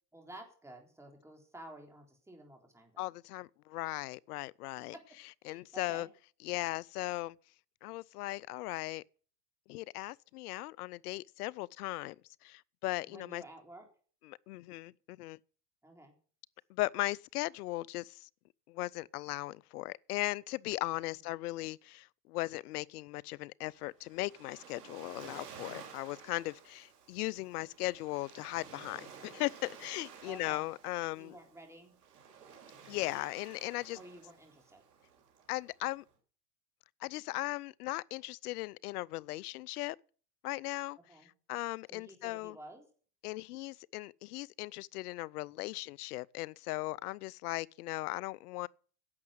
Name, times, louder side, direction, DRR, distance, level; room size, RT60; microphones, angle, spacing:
voice 1, 0.1-3.0 4.9-6.1 13.0-13.9 15.8-16.1 21.1-21.3 30.2-30.7 31.1-32.0 33.9-34.8 41.1-41.3 41.9-42.9, right 1 dB, 5° right, 3.6 m, -52 dB
voice 2, 3.0-5.0 5.5-6.1 6.4-7.4 7.8-9.0 9.7-12.2 12.4-13.4 14.3-15.4 16.7-18.3 18.7-31.3 32.9-34.0 35.5-36.0 37.0-40.0 40.4-41.0 41.5-42.6 43.2-48.7, left 19 dB, 70° left, 0.6 m, -38 dB
Waves surf, 23.7-36.1, right 6 dB, 75° right, 3.4 m, -53 dB
11.0 x 7.2 x 7.7 m
hypercardioid pair, 100°, 48 cm